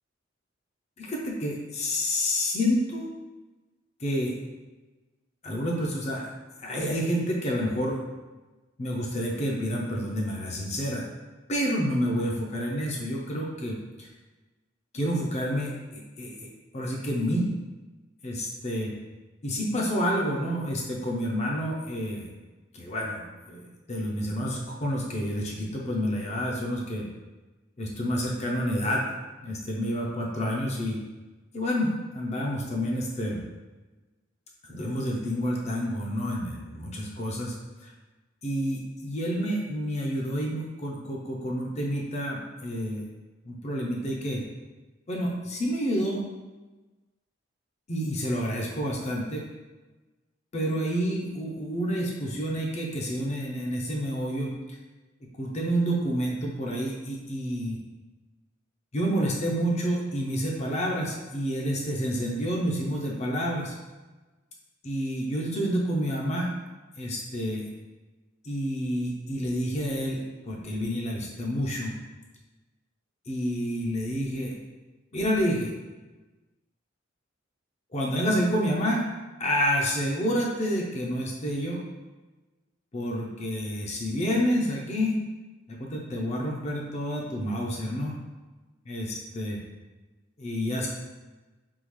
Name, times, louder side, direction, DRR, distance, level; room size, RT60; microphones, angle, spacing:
voice 1, 1.0-3.1 4.0-4.3 5.4-6.2 6.6-8.0 8.8-11.1 11.5-14.1 14.9-16.3 16.7-17.5 18.2-18.9 19.4-22.3 22.7-23.6 23.9-27.1 27.8-29.0 29.4-31.0 31.5-33.4 34.7-37.5 37.8-37.9 38.4-43.1 43.5-44.4 45.1-46.2 47.9-49.4 50.5-54.8 55.4-57.8 58.9-63.7 64.8-66.5 67.0-67.6 68.4-71.9 73.3-74.5 75.1-75.8 77.9-79.0 79.4-81.8 82.9-85.2 85.7-88.2 88.9-89.6 90.4-90.9, equal, 35° left, -2 dB, 0.6 m, -29 dB
3.6 x 2.3 x 3.1 m, 1.2 s
head